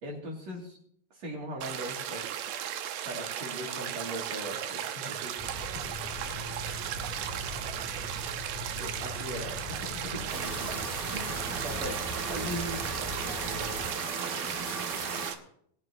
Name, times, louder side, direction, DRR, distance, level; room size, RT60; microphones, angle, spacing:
voice 1, 0.0-0.8 1.1-2.3 3.1-5.8 8.8-10.1 11.1-12.0 12.3-12.8, equal, 50° right, -2 dB, 3.8 m, -39 dB
sound 1, 1.6-15.4, right 10 dB, 80° right, 2.5 m, -36 dB
sound 2, 5.4-13.9, left 1 dB, 10° right, 0.8 m, -41 dB
voice 2, 6.1-6.7 7.1-7.5 7.8-8.2 10.4-10.9 13.3-13.9, equal, 65° left, -1 dB, 0.4 m, -49 dB
sound 3, 10.3-15.3, right 3 dB, 35° right, 2.4 m, -37 dB
21.5 x 11.0 x 2.9 m, 0.67 s
omnidirectional pair, 4.0 m